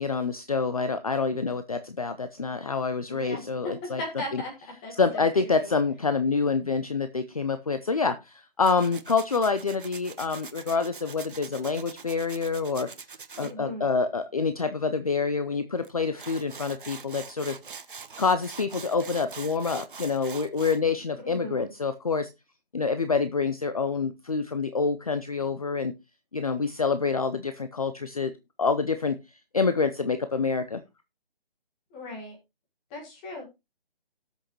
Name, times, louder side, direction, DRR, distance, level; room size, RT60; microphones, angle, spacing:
voice 1, 0.0-4.0 4.3-4.4 5.0-12.9 13.4-17.6 18.2-22.3 22.7-25.9 26.3-28.3 28.6-29.2 29.5-30.8, left 4 dB, 40° left, 10 dB, 0.6 m, -27 dB
voice 2, 3.1-4.5 4.8-5.7 13.4-14.0 21.2-21.7 31.9-32.4 32.9-33.5, left 1 dB, 10° left, 0 dB, 1.6 m, -38 dB
Tools, 8.6-13.5 15.8-15.9 16.2-20.8, right 5 dB, 60° right, 1.0 m, -43 dB
18.0 x 6.4 x 3.0 m, 0.25 s
hypercardioid pair, 175°, 30 cm